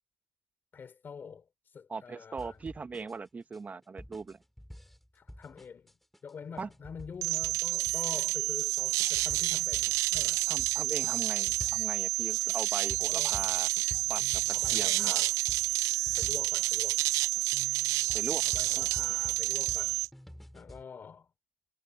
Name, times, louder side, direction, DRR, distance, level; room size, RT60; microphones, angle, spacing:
voice 1, 0.7-2.6 5.1-6.0 6.2-10.5 13.1-13.4 14.5-15.4 16.2-17.0 18.4-20.0 20.5-21.3, left 6 dB, 35° left, 3.8 m, -46 dB
voice 2, 1.9-4.4 6.6-6.7 10.5-13.7 14.1-14.4 14.7-15.2 18.1-18.4 18.8-18.9, right 4 dB, 25° right, 1.5 m, -39 dB
sound 1, 2.4-16.9 17.4-20.8, equal, ahead, 6.0 m, -49 dB
sound 2, 7.2-20.1, right 18 dB, 65° right, 0.5 m, -29 dB
hypercardioid pair, 75°, 6 cm